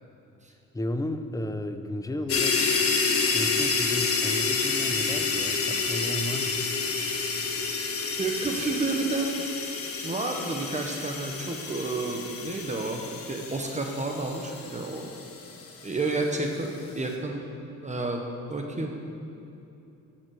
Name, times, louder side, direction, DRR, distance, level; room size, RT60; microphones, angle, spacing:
voice 1, 0.7-3.0 3.3-6.7, left 1 dB, 10° left, 8 dB, 0.7 m, -33 dB
sound 1, 2.3-15.9, left 4 dB, 50° left, 1.5 m, -29 dB
voice 2, 8.2-9.4 10.0-15.0 15.8-16.7 16.9-17.4 17.8-18.2 18.5-18.9, right 3 dB, 25° right, 2 dB, 1.2 m, -30 dB
13.0 x 7.5 x 4.9 m, 2.8 s
cardioid pair, 90°, 30 cm